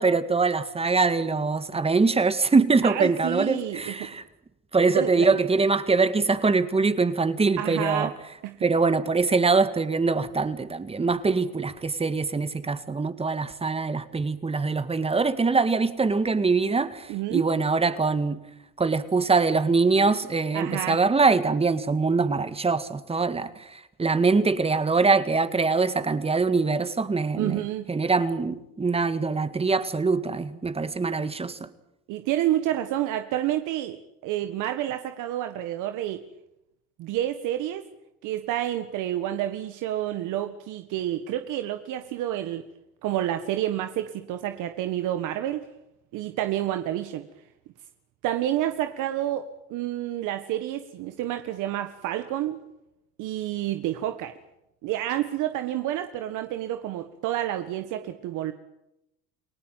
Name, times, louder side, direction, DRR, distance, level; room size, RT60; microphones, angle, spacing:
voice 1, 0.0-4.2 4.7-8.1 8.6-18.4 18.8-31.7, right 4 dB, 20° right, 1.9 m, -23 dB
voice 2, 2.8-4.1 5.0-5.3 7.6-8.1 8.4-8.7 17.1-17.4 20.5-21.0 27.3-27.9 32.1-34.0 34.2-36.2 37.0-37.8 38.2-42.6 43.0-45.7 46.1-47.2 48.2-52.6 53.2-54.3 54.8-58.5, right 12 dB, 70° right, 1.7 m, -29 dB
29.5 x 18.5 x 9.2 m
cardioid pair, 120°, 32 cm